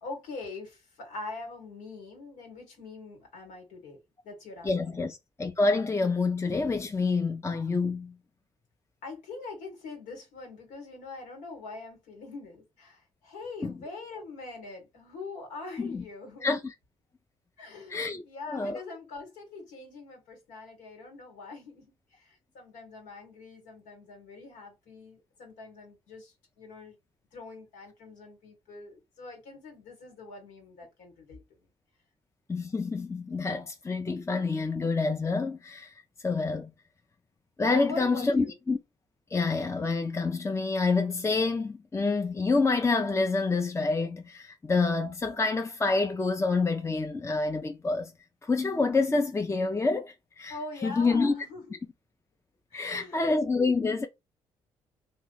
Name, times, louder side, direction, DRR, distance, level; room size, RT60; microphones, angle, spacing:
voice 1, 0.0-5.1 9.0-16.5 17.6-27.0 27.3-31.4 37.7-38.6 50.5-51.8 52.7-53.3, left 3 dB, 80° left, 1.5 m, -43 dB
voice 2, 4.6-8.1 13.6-13.7 15.8-16.0 16.4-16.7 17.9-18.8 32.5-35.9 36.2-36.7 37.6-38.8 39.3-48.1 48.4-50.6 50.8-51.3 52.7-54.1, left 3 dB, 20° left, 0.5 m, -27 dB
3.0 x 2.4 x 3.9 m
hypercardioid pair, 55°, 13 cm